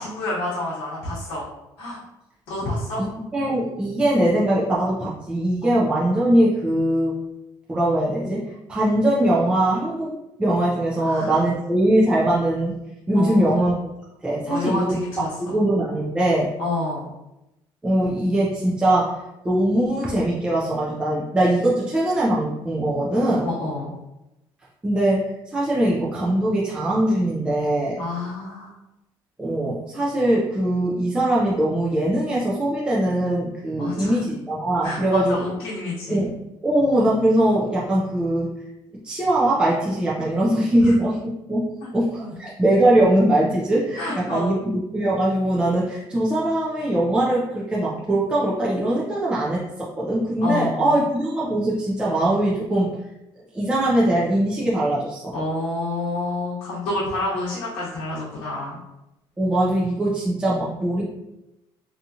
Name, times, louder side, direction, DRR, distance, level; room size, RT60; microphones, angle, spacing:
voice 1, 0.0-1.5 1.8-2.0 2.5-3.0 5.6-5.8 11.0-11.4 13.1-13.6 14.5-15.6 16.6-17.1 23.4-24.0 28.0-28.7 33.8-34.2 34.8-36.2 40.8-40.9 41.8-41.9 42.2-42.3 44.0-44.6 50.4-51.0 55.3-58.8, left 2 dB, 75° left, -7 dB, 0.9 m, -29 dB
voice 2, 3.3-7.2 7.7-12.8 13.1-13.7 14.2-14.9 15.4-16.5 17.8-23.5 24.8-28.0 29.4-35.4 36.1-36.3 36.6-38.5 39.0-53.0 53.5-55.3 59.4-61.0, right 1 dB, 10° right, -7 dB, 0.5 m, -21 dB
2.7 x 2.4 x 2.7 m, 0.91 s
cardioid pair, 135°, 9 cm